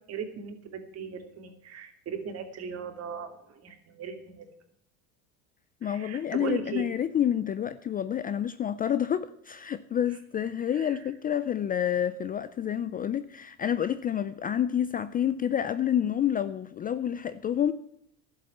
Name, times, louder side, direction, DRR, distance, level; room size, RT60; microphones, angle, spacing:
voice 1, 0.1-4.4 5.8-6.9 10.7-11.0, right 6 dB, 40° right, 2.7 m, -38 dB
voice 2, 5.8-17.7, left 9 dB, 25° left, 0.4 m, -28 dB
11.5 x 7.4 x 8.3 m
supercardioid pair, 115°, 37 cm